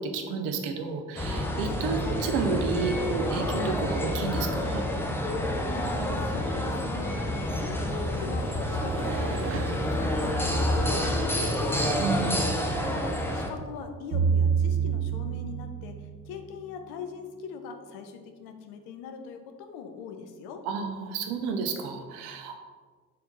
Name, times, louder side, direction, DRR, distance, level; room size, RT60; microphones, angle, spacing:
voice 1, 0.0-4.8 12.0-12.6 20.7-22.6, right 4 dB, 60° right, 5 dB, 0.9 m, -31 dB
sound 1, 1.2-13.5, left 1 dB, 5° left, 0.8 m, -28 dB
voice 2, 5.7-7.3 7.6-12.3 12.9-16.0 16.3-20.6, left 6 dB, 55° left, 6 dB, 0.9 m, -41 dB
sound 2, 7.4-11.1, right 6 dB, 30° right, 0.5 m, -39 dB
sound 3, 14.1-16.5, right 7 dB, 75° right, 1.3 m, -26 dB
4.6 x 4.2 x 5.3 m, 1.5 s
figure-of-eight pair, 55°, 45 cm